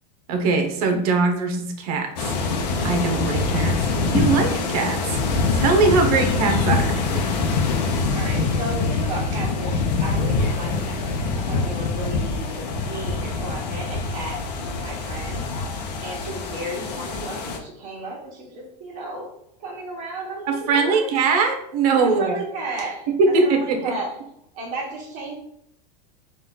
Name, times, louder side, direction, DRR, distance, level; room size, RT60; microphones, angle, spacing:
voice 1, 0.3-2.1 2.8-3.8 4.1-5.2 5.5-7.3 20.5-22.4 23.2-23.9, right 4 dB, 60° right, 5 dB, 0.9 m, -21 dB
sound 1, 2.2-17.6, left 4 dB, 75° left, 0.8 m, -24 dB
voice 2, 7.5-15.6 16.0-19.3 19.6-21.1 22.0-24.2 24.5-25.3, right 2 dB, 35° right, -2 dB, 1.4 m, -34 dB
4.3 x 2.6 x 3.7 m, 0.72 s
supercardioid pair, 150°, 21 cm